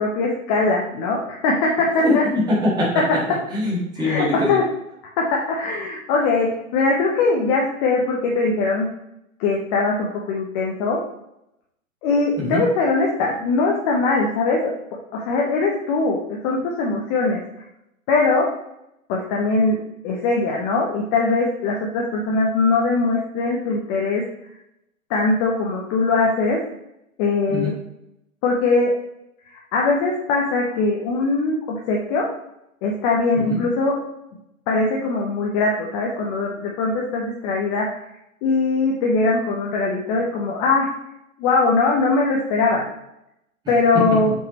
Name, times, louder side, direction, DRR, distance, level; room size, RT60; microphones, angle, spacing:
voice 1, 0.0-2.2 4.0-4.6 5.2-8.9 9.4-11.0 12.0-14.7 15.1-17.4 18.1-18.5 19.1-19.8 20.0-24.2 25.1-26.6 27.2-27.8 28.4-28.9 29.7-31.6 31.9-32.3 32.8-34.0 34.7-38.0 38.4-40.9 41.4-42.8 43.7-44.3, left 3 dB, 25° left, -2 dB, 0.9 m, -21 dB
voice 2, 2.0-3.0 3.3-4.6 12.4-12.6 27.5-27.7 33.4-33.6 43.9-44.2, left 2 dB, 10° right, -6 dB, 1.8 m, -22 dB
6.7 x 5.4 x 3.0 m, 0.83 s
figure-of-eight pair, 120°, 42 cm